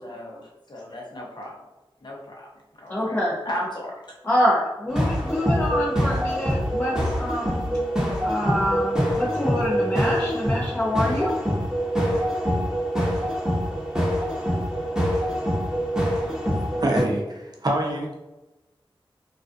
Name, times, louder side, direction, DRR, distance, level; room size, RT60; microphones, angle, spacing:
voice 1, 0.0-1.5 2.0-2.5 2.8-3.2 3.4-3.9, left 1 dB, 50° left, -3 dB, 0.8 m, -35 dB
voice 2, 2.9-3.4 4.2-7.6 8.2-11.4, equal, 25° left, -7 dB, 0.6 m, -26 dB
sound 1, 4.9-17.0, equal, 5° right, 0.8 m, -25 dB
voice 3, 16.5-18.2, right 1 dB, 45° right, 0 dB, 0.6 m, -26 dB
2.4 x 2.3 x 2.5 m, 1.0 s
cardioid pair, 40°, 10 cm